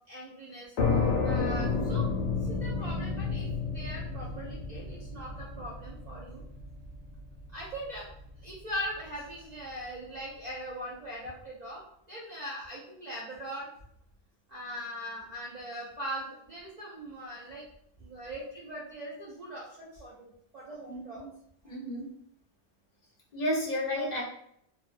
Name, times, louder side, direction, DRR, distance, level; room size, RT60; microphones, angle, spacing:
voice 1, 0.1-0.7 1.2-2.1 2.4-3.5 3.7-6.4 7.5-8.1 8.4-11.8 12.1-13.7 14.5-17.6 18.0-21.2, equal, 85° right, -5 dB, 0.3 m, -40 dB
sound 1, 0.8-8.2, left 4 dB, 85° left, 1.0 m, -31 dB
voice 2, 20.9-21.3 21.6-22.2 23.3-24.2, left 1 dB, 40° left, -5 dB, 0.7 m, -32 dB
2.5 x 2.1 x 2.4 m, 0.71 s
omnidirectional pair, 1.3 m